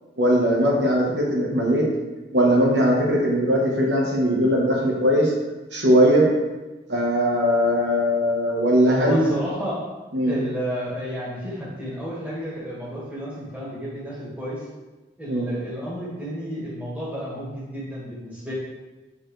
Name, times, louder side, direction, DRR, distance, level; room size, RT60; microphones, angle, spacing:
voice 1, 0.2-1.9 2.3-5.3 5.7-6.3 6.9-9.3 10.1-10.3 15.3-15.5, equal, 70° right, -2 dB, 1.3 m, -20 dB
voice 2, 8.9-9.8 10.2-14.6 15.2-18.5, equal, 10° right, -8 dB, 1.9 m, -31 dB
8.5 x 4.6 x 3.3 m, 1.1 s
head